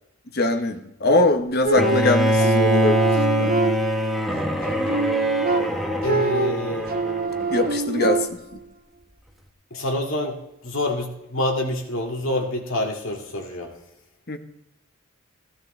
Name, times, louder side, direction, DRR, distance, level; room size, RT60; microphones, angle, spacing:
voice 1, 0.3-3.5 6.3-6.5 7.5-8.4 14.3-14.4, left 2 dB, 45° left, 7 dB, 1.1 m, -22 dB
sound 1, 1.6-4.2 4.6-8.6, right 4 dB, 45° right, 0.8 m, -25 dB
Bowed string instrument, 1.8-7.8, right 1 dB, ahead, 1.1 m, -23 dB
voice 2, 6.0-6.9 9.7-13.7, left 1 dB, 70° left, 1 dB, 2.1 m, -27 dB
16.0 x 13.0 x 3.3 m, 0.83 s
head